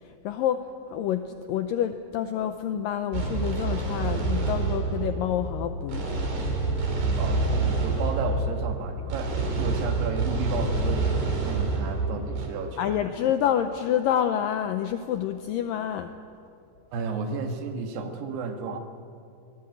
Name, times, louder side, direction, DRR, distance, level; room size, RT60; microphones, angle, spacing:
voice 1, 0.0-6.2 12.8-16.1, left 10 dB, 85° left, 8 dB, 2.0 m, -28 dB
sound 1, 3.1-12.5, right 3 dB, 60° right, 4.8 m, -27 dB
voice 2, 7.2-13.0 16.9-18.8, right 5 dB, 75° right, 5 dB, 3.6 m, -33 dB
22.5 x 18.0 x 9.1 m, 2.6 s
omnidirectional pair, 4.8 m